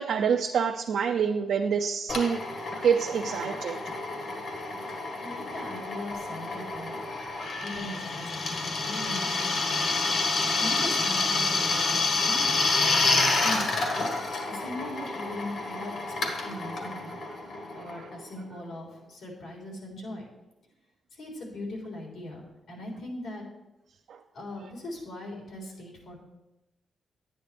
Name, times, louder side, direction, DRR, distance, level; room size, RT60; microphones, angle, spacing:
voice 1, 0.0-2.4 2.8-3.8 17.9-18.1 24.1-24.2, right 7 dB, 75° right, 3 dB, 0.5 m, -26 dB
Drill, 2.1-18.4, left 3 dB, 65° left, 1.7 m, -29 dB
voice 2, 5.2-6.9 7.4-13.8 14.5-17.2 17.7-20.3 21.1-22.4 22.7-23.4 24.3-26.2, left 1 dB, 85° left, -2 dB, 3.7 m, -40 dB
10.5 x 9.6 x 3.4 m, 0.96 s
cardioid pair, 120°, 0 cm